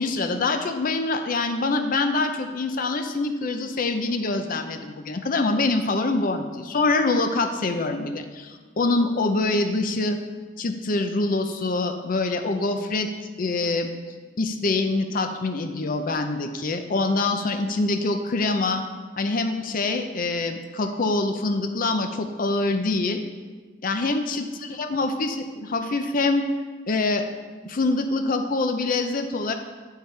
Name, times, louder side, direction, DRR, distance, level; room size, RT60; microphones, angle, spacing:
voice 1, 0.0-10.2 10.6-13.1 13.4-13.9 14.4-18.8 19.2-23.2 23.8-26.5 26.9-27.3 27.6-29.5, left 3 dB, 45° left, 7 dB, 0.5 m, -25 dB
8.0 x 6.7 x 3.3 m, 1.4 s
head